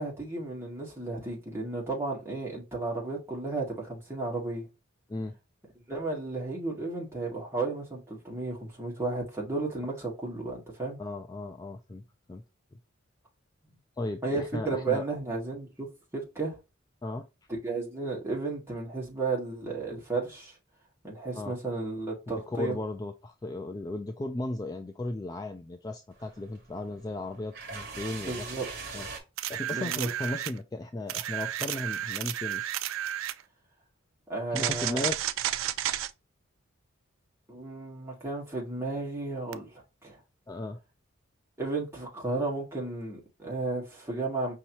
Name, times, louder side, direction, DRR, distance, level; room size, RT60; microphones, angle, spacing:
voice 1, 0.0-4.7 5.9-11.0 14.2-15.9 16.1-16.6 17.5-20.6 21.0-22.8 28.2-28.7 29.7-30.1 34.3-35.1 37.5-40.2 41.6-44.5, right 3 dB, 10° right, 1.7 m, -33 dB
voice 2, 11.0-12.0 12.3-12.4 14.0-15.0 17.0-17.3 21.3-21.6 22.5-28.5 28.9-29.1 29.5-32.7 34.5-35.2 40.5-40.8, left 2 dB, 20° left, 0.3 m, -35 dB
sound 1, 26.1-29.2, right 4 dB, 50° right, 1.4 m, -42 dB
sound 2, 29.4-30.6 31.1-33.4 34.5-36.1 39.5-39.6, right 12 dB, 80° right, 0.4 m, -32 dB
5.4 x 2.8 x 2.9 m
head